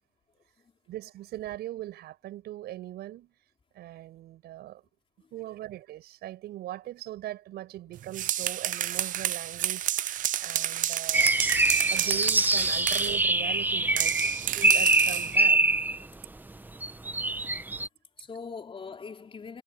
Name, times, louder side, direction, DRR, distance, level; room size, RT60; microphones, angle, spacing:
voice 1, 0.3-0.7 5.2-5.3 14.5-14.7 16.4-16.5 18.2-19.6, left 5 dB, 30° left, 4.1 m, -43 dB
voice 2, 0.9-3.3 3.7-4.8 5.3-11.3 11.9-15.6, right 14 dB, 75° right, 6.7 m, -40 dB
sound 1, 8.0-13.2 14.0-15.3, right 12 dB, 50° right, 0.5 m, -30 dB
sound 2, 11.1-16.0 16.8-17.9, right 2 dB, 10° right, 1.0 m, -24 dB
cardioid pair, 110°, 17 cm